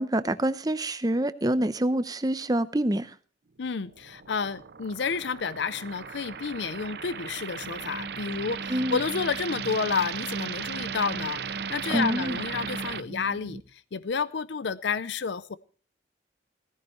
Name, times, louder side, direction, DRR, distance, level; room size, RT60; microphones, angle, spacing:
voice 1, 0.0-3.1 8.7-9.0 11.9-12.4, right 1 dB, 20° right, 0.7 m, -26 dB
voice 2, 3.6-15.6, left 5 dB, 80° left, 0.6 m, -30 dB
sound 1, 3.8-13.0, right 7 dB, 60° right, 0.6 m, -37 dB
sound 2, 7.6-13.6, right 1 dB, 45° right, 1.3 m, -40 dB
17.0 x 15.0 x 3.1 m
head